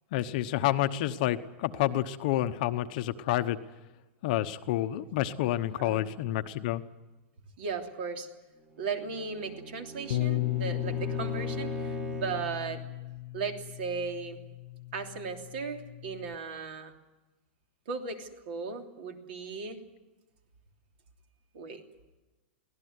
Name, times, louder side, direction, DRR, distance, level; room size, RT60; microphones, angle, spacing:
voice 1, 0.1-3.6 4.2-6.8, left 14 dB, 40° left, 9 dB, 1.0 m, -29 dB
voice 2, 5.8-6.1 7.6-8.3 8.8-12.8 13.3-14.4 14.9-16.9 17.9-19.8 21.5-21.8, right 5 dB, 55° right, 4 dB, 3.1 m, -36 dB
Bowed string instrument, 8.7-12.6, right 1 dB, 10° right, 1.2 m, -40 dB
Bass guitar, 10.1-16.3, left 18 dB, 70° left, 0.7 m, -35 dB
24.0 x 17.0 x 9.6 m, 1.1 s
supercardioid pair, 175°, 7 cm